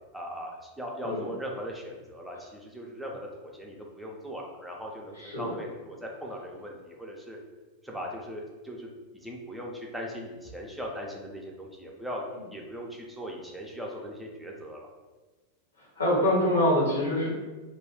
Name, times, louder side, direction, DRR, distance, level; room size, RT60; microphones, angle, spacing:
voice 1, 0.1-7.4 7.8-12.2 12.5-14.9, equal, ahead, -2 dB, 0.5 m, -39 dB
voice 2, 1.0-1.3 5.2-5.5 15.8-17.3, left 1 dB, 75° left, -5 dB, 1.1 m, -25 dB
2.4 x 2.2 x 3.5 m, 1.2 s
figure-of-eight pair, 90°, 0 cm